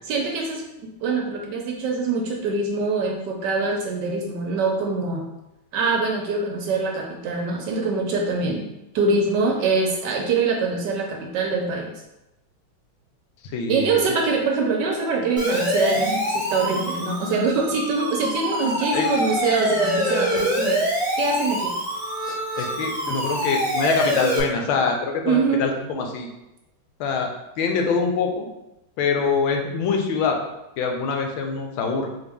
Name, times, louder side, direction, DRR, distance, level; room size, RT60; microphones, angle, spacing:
voice 1, 0.1-5.2 5.7-8.6 8.9-11.9 13.7-20.9 21.2-21.7 25.2-25.7, right 3 dB, 75° right, 1 dB, 1.0 m, -24 dB
voice 2, 13.4-14.0 18.9-19.1 22.6-26.3 27.0-27.3 27.6-28.5 29.0-30.4 30.8-32.1, left 5 dB, 90° left, 3 dB, 1.5 m, -24 dB
Siren, 15.4-24.4, equal, 30° right, 1.0 m, -25 dB
4.1 x 2.7 x 3.4 m, 0.92 s
omnidirectional pair, 2.2 m